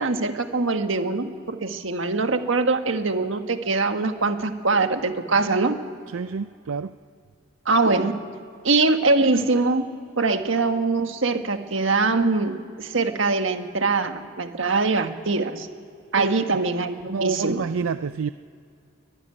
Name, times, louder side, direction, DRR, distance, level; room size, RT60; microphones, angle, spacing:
voice 1, 0.0-5.8 7.6-8.1 8.6-9.8 10.2-15.7 16.1-17.6, right 3 dB, 70° right, 7 dB, 1.5 m, -23 dB
voice 2, 6.1-6.9 16.2-16.4 17.1-18.3, right 5 dB, 90° right, 12 dB, 0.5 m, -28 dB
23.0 x 11.5 x 9.9 m, 2.4 s
head